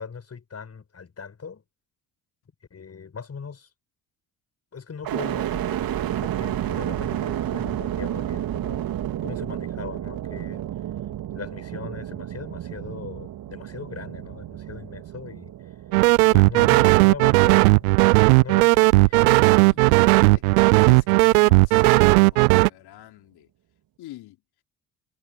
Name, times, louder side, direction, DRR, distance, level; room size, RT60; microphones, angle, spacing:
voice 1, 0.0-1.6 2.7-3.7 4.7-10.6 11.3-15.7 16.2-20.0 21.1-21.4, left 6 dB, 35° left, 7.7 m, -40 dB
sound 1, 5.0-19.0 19.6-20.3, right 12 dB, 50° right, 3.1 m, -31 dB
sound 2, 15.9-22.7, right 27 dB, 70° right, 0.6 m, -16 dB
voice 2, 19.7-23.5 24.0-24.4, left 15 dB, 60° left, 3.9 m, -44 dB
figure-of-eight pair, 50°, 44 cm